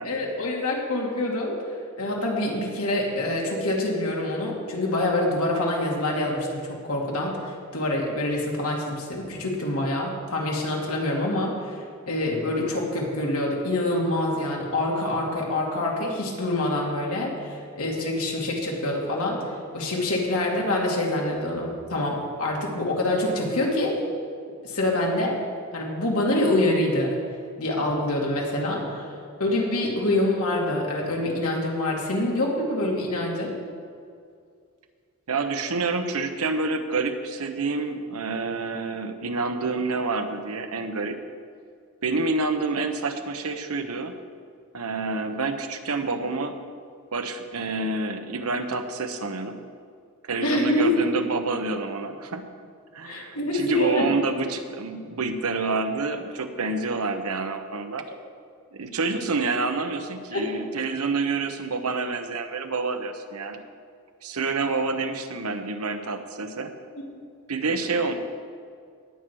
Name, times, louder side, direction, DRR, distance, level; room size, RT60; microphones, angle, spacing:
voice 1, 0.0-1.6 2.0-7.4 7.7-19.4 19.7-24.0 24.6-25.4 25.7-27.2 27.6-29.1 29.4-33.5 50.4-50.9 53.0-54.1 60.3-60.5, left 1 dB, 75° left, -2 dB, 2.6 m, -26 dB
voice 2, 35.3-41.2 42.0-44.2 44.7-46.6 47.1-49.6 50.2-52.4 52.9-58.1 58.7-63.6 64.2-66.7 67.5-68.1, right 3 dB, 80° right, 7 dB, 1.0 m, -28 dB
18.5 x 7.6 x 4.7 m, 2.2 s
head